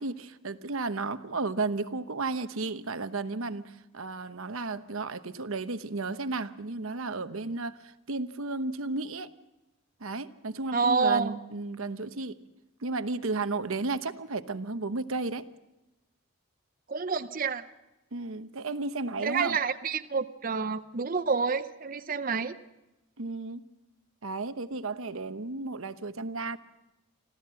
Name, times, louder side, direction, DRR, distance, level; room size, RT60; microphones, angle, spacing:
voice 1, 0.0-9.3 10.0-12.4 12.8-15.4 18.1-19.6 23.2-23.6 24.2-26.6, right 3 dB, 75° right, 11 dB, 1.0 m, -33 dB
voice 2, 10.7-11.3 16.9-17.6 19.2-22.6, right 5 dB, 40° right, 10 dB, 0.7 m, -28 dB
26.0 x 15.5 x 7.6 m, 0.99 s
head